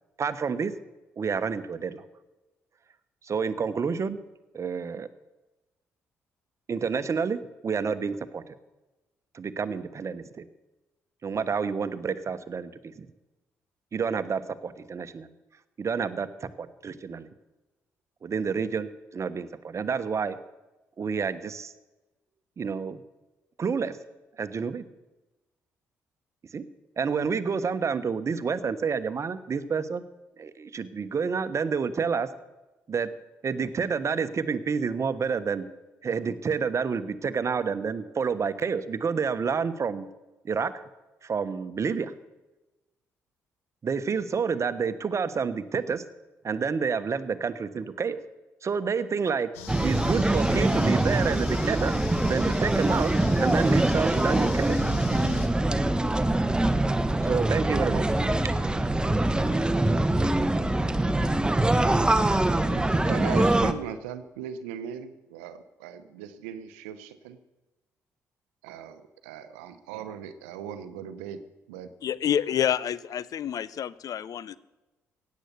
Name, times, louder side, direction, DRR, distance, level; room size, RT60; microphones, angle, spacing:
voice 1, 0.2-0.7 1.2-2.0 3.2-4.2 4.5-5.1 6.7-7.4 7.6-8.4 9.3-10.4 11.2-13.1 13.9-15.3 15.8-17.3 18.2-20.4 21.0-21.7 22.6-23.0 23.6-23.9 24.4-24.8 26.5-26.7 27.0-30.0 30.4-32.3 32.9-33.1 33.4-35.7 36.0-40.1 40.4-40.7 41.2-42.1 43.8-46.0 46.4-48.2 48.6-49.5 49.8-51.9 52.3-53.1 53.4-54.8 57.2-58.1, right 5 dB, 45° right, 13 dB, 1.1 m, -29 dB
sound 1, 49.5-55.5, left 7 dB, 85° left, 1.3 m, -41 dB
sound 2, 49.7-63.7, right 1 dB, 10° right, 1.1 m, -24 dB
voice 2, 62.6-67.4 68.6-69.0 69.3-71.4 71.7-71.9, right 8 dB, 80° right, 11 dB, 0.9 m, -38 dB
voice 3, 72.0-74.6, left 9 dB, 55° left, 19 dB, 0.6 m, -28 dB
16.5 x 9.4 x 6.9 m, 1.1 s
hypercardioid pair, 45°, 7 cm